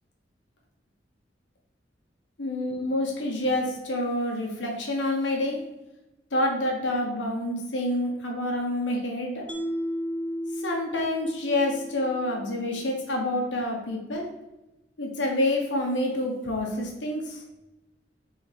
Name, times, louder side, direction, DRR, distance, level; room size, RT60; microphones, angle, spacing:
voice 1, 2.4-5.6 6.3-9.4 10.5-14.2 15.0-17.4, left 1 dB, 85° left, 0 dB, 1.3 m, -28 dB
Mallet percussion, 9.5-12.8, equal, 5° left, 0.5 m, -34 dB
6.8 x 3.9 x 3.5 m, 1.0 s
head